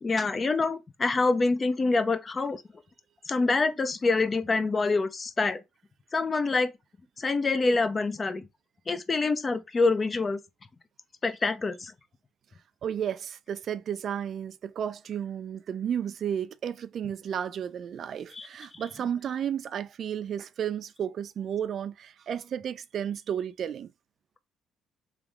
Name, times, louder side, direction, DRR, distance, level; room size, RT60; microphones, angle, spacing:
voice 1, 0.0-2.6 3.3-5.6 6.1-6.7 7.2-8.4 8.9-10.4 11.2-11.9 18.3-18.5, left 3 dB, 30° left, 0.7 m, -26 dB
voice 2, 12.8-23.9, right 9 dB, 60° right, 0.3 m, -33 dB
3.5 x 3.0 x 3.5 m
cardioid pair, 80°, 0 cm